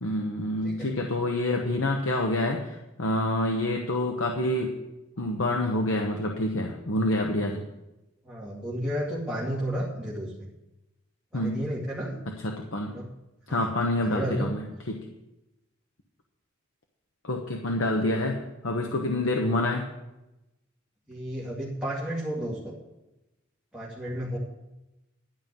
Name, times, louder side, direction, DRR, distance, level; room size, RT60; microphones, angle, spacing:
voice 1, 0.0-4.8 5.2-7.7 11.3-11.6 12.3-12.9 13.5-15.0 17.2-19.9, left 1 dB, 75° left, 2 dB, 1.1 m, -27 dB
voice 2, 8.2-10.5 11.3-12.2 12.9-13.1 13.5-13.7 14.0-14.5 21.1-22.7 23.7-24.4, equal, 5° right, -8 dB, 2.4 m, -32 dB
12.0 x 5.6 x 9.0 m, 0.97 s
head